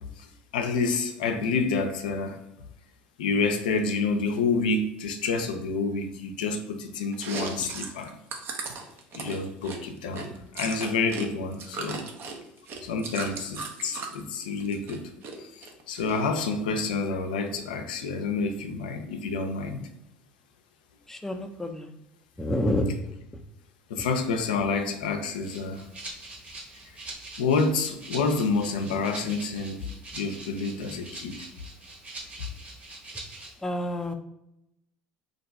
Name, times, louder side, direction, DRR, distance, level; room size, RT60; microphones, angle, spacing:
voice 1, 0.5-2.4 3.2-8.2 9.1-12.1 12.8-15.1 15.4-19.8 23.9-25.8 27.4-29.9 30.1-31.4, left 4 dB, 85° left, 6 dB, 0.4 m, -28 dB
Chewing mastication, 7.1-11.3 11.5-14.2 14.6-15.3 15.6-16.5, right 4 dB, 50° right, 0.7 m, -37 dB
voice 2, 21.1-22.0 22.4-22.9 33.6-34.1, left 1 dB, 10° left, 5 dB, 0.5 m, -28 dB
Rattle (instrument), 25.4-33.5, right 2 dB, 35° right, 1.2 m, -43 dB
2.6 x 2.2 x 4.0 m, 0.84 s
hypercardioid pair, 75°, 5 cm